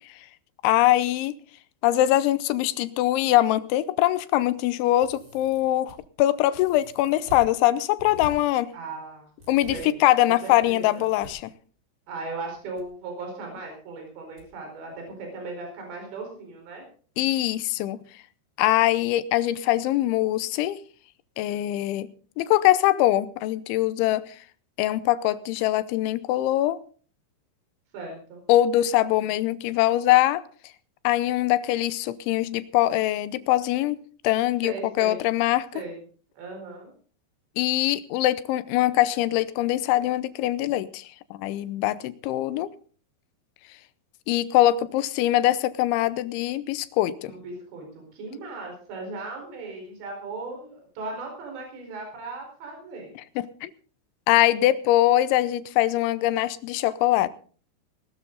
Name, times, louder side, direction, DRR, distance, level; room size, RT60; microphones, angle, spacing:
voice 1, 0.6-1.3 1.8-8.7 9.5-11.5 17.2-18.0 18.6-20.8 21.4-22.1 22.4-24.3 24.8-26.8 28.5-30.4 31.0-35.7 37.6-42.7 44.3-47.3 53.4-53.7 54.3-57.3, left 14 dB, 85° left, 15 dB, 3.2 m, -23 dB
sound 1, 5.0-5.9 6.5-7.4 8.0-8.3 9.4-9.7 10.6-11.3 12.4-12.8 13.1-13.2 14.4-14.5 14.8-15.0, equal, 20° right, 4.5 m, -45 dB
voice 2, 8.7-9.3 9.7-11.1 12.1-16.8 27.9-28.4 34.6-35.2 35.7-36.0 36.3-36.9 47.3-47.8 48.1-53.2, right 3 dB, 70° right, 2 dB, 6.7 m, -37 dB
20.0 x 13.0 x 4.0 m, 0.42 s
omnidirectional pair, 5.3 m